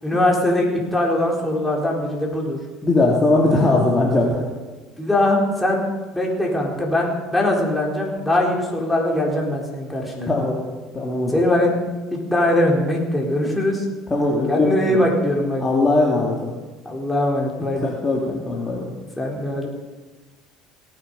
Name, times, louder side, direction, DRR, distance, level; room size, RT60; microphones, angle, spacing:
voice 1, 0.0-2.6 5.0-5.8 6.1-10.3 11.3-11.7 12.1-13.8 14.5-15.6 16.8-17.9 19.2-19.7, left 1 dB, 5° left, -2 dB, 4.1 m, -21 dB
voice 2, 2.8-4.5 10.3-10.6 10.9-11.5 14.1-15.0 15.6-16.5 17.6-18.9, left 2 dB, 25° left, -3 dB, 2.7 m, -20 dB
18.0 x 9.3 x 5.6 m, 1.2 s
supercardioid pair, 95°, 0 cm